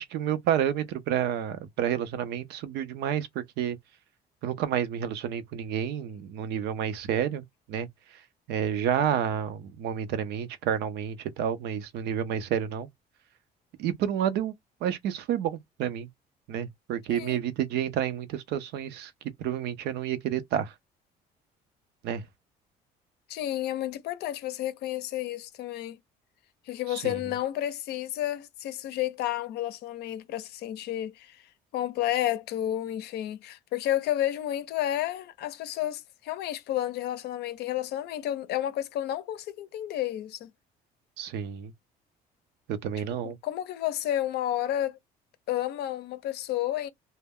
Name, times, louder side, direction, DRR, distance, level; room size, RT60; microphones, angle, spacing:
voice 1, 0.0-3.8 4.4-8.2 8.5-12.9 13.8-14.5 14.8-16.1 16.5-19.1 19.4-20.7 22.0-22.3 26.9-27.2 41.2-41.7 42.7-43.4, right 9 dB, 80° right, 0.6 m, -30 dB
voice 2, 17.1-17.4 23.3-26.0 26.7-31.4 31.7-40.5 43.2-45.0 45.5-46.9, left 12 dB, 75° left, 0.5 m, -31 dB
2.1 x 2.1 x 3.4 m
cardioid pair, 110°, 17 cm